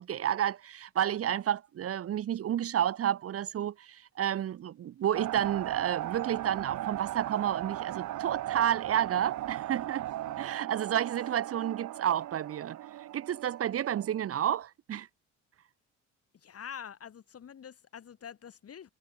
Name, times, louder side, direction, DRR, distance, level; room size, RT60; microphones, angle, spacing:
voice 1, 0.0-10.1 10.4-15.1, right 10 dB, 50° right, 0.9 m, -31 dB
sound 1, 5.1-14.2, right 14 dB, 75° right, 3.0 m, -37 dB
voice 2, 16.3-18.9, left 8 dB, 50° left, 6.2 m, -46 dB
cardioid pair, 80°, 30 cm